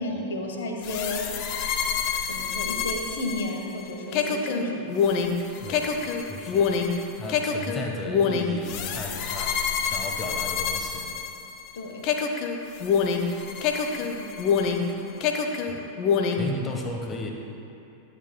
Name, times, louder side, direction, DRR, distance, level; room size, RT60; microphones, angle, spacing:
voice 1, 0.0-1.4 2.3-4.8 11.7-12.1 13.6-13.7 14.0-14.3 14.8-15.2, left 1 dB, 60° left, 2 dB, 1.3 m, -32 dB
sound 1, 0.8-11.7 12.0-14.9 15.2-16.5, left 6 dB, 40° left, 0.8 m, -26 dB
voice 2, 5.6-11.2 15.7-15.8 16.3-17.3, left 2 dB, 20° left, 1 dB, 1.1 m, -35 dB
24.0 x 8.2 x 2.2 m, 2.8 s
figure-of-eight pair, 90°, 0 cm